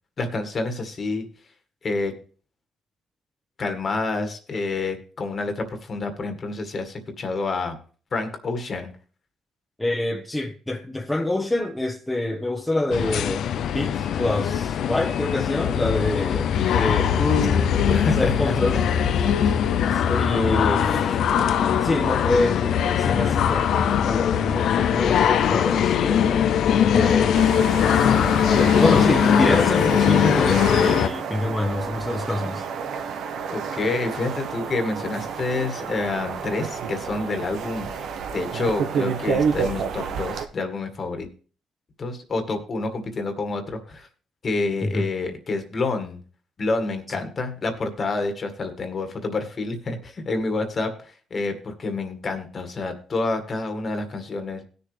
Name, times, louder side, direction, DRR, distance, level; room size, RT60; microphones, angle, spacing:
voice 1, 0.2-1.3 1.8-2.1 3.6-7.8 8.1-8.9 17.2-18.8 19.2-19.4 20.3-21.2 21.4-21.8 27.0-27.6 29.3-29.6 33.5-41.3 42.0-44.1 44.4-46.2 46.6-54.6, left 3 dB, 45° left, 1.9 m, -28 dB
voice 2, 9.8-13.5 13.7-17.2 18.2-18.8 19.9-21.3 21.8-26.5 26.8-27.4 28.5-32.6 44.8-45.1, left 2 dB, 10° left, 1.1 m, -26 dB
sound 1, 12.9-31.1, left 8 dB, 70° left, 0.5 m, -21 dB
sound 2, 27.3-40.5, right 6 dB, 75° right, 1.1 m, -30 dB
17.5 x 6.8 x 3.3 m
cardioid pair, 90°, 0 cm